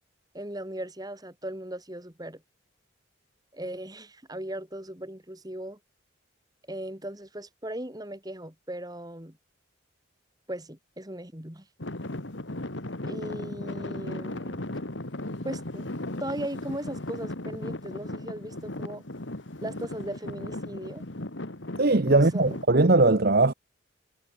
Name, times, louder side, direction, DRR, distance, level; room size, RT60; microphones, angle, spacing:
voice 1, 0.3-2.4 3.5-5.8 6.7-9.4 10.5-11.7 13.0-14.6 15.4-15.9 16.2-19.0 19.6-21.0 22.1-22.6, right 1 dB, 20° right, 3.5 m, -38 dB
Traffic noise roadway noise / Engine, 11.8-22.6, left 1 dB, 65° left, 2.0 m, -36 dB
voice 2, 21.8-23.5, right 2 dB, 50° right, 1.1 m, -20 dB
head